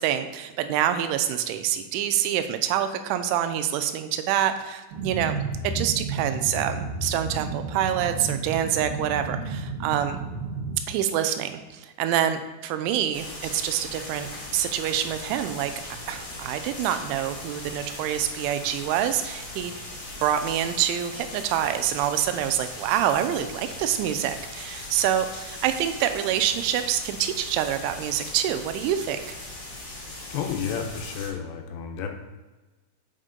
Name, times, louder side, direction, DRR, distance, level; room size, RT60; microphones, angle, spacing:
voice 1, 0.0-5.4 5.6-10.2 10.9-15.7 16.1-19.7 20.2-29.4, right 10 dB, 85° right, 9 dB, 3.0 m, -26 dB
sound 1, 4.9-10.8, right 3 dB, 70° right, 3.2 m, -32 dB
sound 2, 13.1-31.3, left 2 dB, 40° left, 2.0 m, -39 dB
voice 2, 30.3-32.1, left 7 dB, 75° left, 4 dB, 2.8 m, -31 dB
8.0 x 5.2 x 3.8 m, 1.2 s
omnidirectional pair, 5.4 m